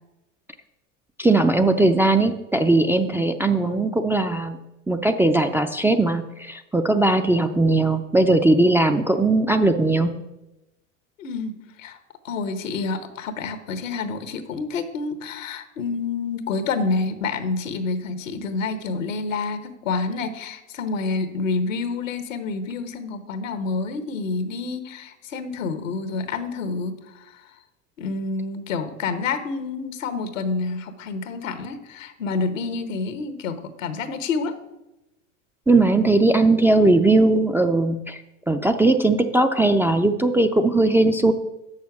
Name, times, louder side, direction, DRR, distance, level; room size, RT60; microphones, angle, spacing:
voice 1, 1.2-4.6 4.9-10.1 35.7-38.2 38.5-41.3, right 2 dB, 5° right, 4 dB, 0.3 m, -19 dB
voice 2, 11.2-12.0 12.2-27.4 28.0-34.6, left 4 dB, 85° left, 10 dB, 1.0 m, -28 dB
6.9 x 6.4 x 5.8 m, 0.96 s
hypercardioid pair, 90°, 38 cm